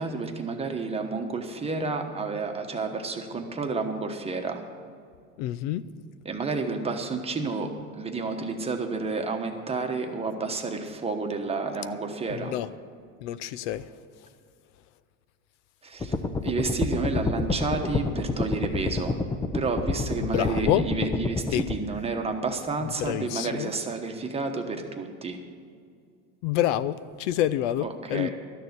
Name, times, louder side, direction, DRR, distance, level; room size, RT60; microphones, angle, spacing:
voice 1, 0.0-4.6 6.2-12.6 15.8-16.1 16.4-19.2 19.5-25.4 27.8-28.3, right 4 dB, 15° right, 5 dB, 1.1 m, -30 dB
voice 2, 5.4-5.8 12.3-12.7 13.2-13.9 20.2-20.9 21.5-21.7 23.0-23.7 26.4-28.3, left 12 dB, 75° left, 15 dB, 0.6 m, -27 dB
sound 1, 16.0-21.7, left 3 dB, 10° left, 0.5 m, -28 dB
12.5 x 6.8 x 9.5 m, 2.2 s
supercardioid pair, 135°, 36 cm